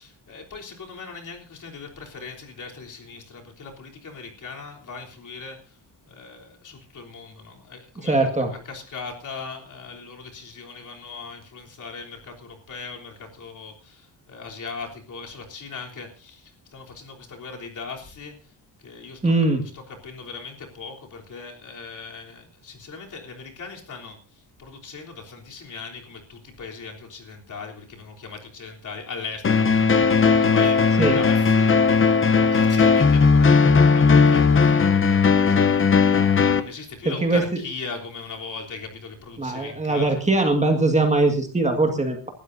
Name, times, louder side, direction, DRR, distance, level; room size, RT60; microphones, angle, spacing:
voice 1, 0.0-5.8 6.1-8.3 8.7-19.3 19.7-30.1 30.4-32.2 32.5-35.9 36.5-40.2, left 4 dB, 45° left, 1 dB, 3.5 m, -39 dB
voice 2, 8.0-8.5 19.2-19.6 31.0-31.2 37.1-37.4 39.4-42.3, right 2 dB, 15° right, 4 dB, 1.9 m, -21 dB
sound 1, 29.4-36.6, left 5 dB, 30° left, 0.9 m, -17 dB
29.0 x 12.5 x 2.7 m, 0.34 s
cardioid pair, 150°, 42 cm